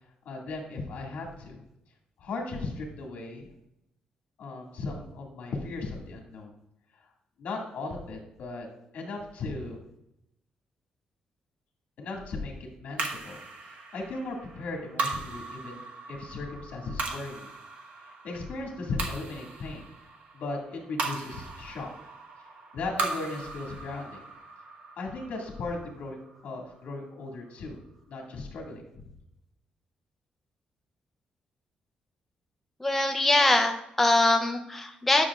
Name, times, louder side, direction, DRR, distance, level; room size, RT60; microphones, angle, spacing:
voice 1, 0.3-1.6 2.2-3.5 4.4-6.5 7.4-8.7 8.9-9.8 12.0-13.4 13.7-17.5 18.2-19.8 20.3-21.9 22.7-24.2 25.0-26.2 26.4-27.8 28.1-28.8, left 3 dB, 65° left, 1 dB, 1.8 m, -37 dB
sound 1, 13.0-27.5, right 3 dB, 60° right, 1.1 m, -38 dB
voice 2, 32.8-35.2, left 2 dB, 5° left, 4 dB, 0.4 m, -23 dB
10.0 x 6.4 x 2.4 m, 0.80 s
wide cardioid pair, 180°, 3 cm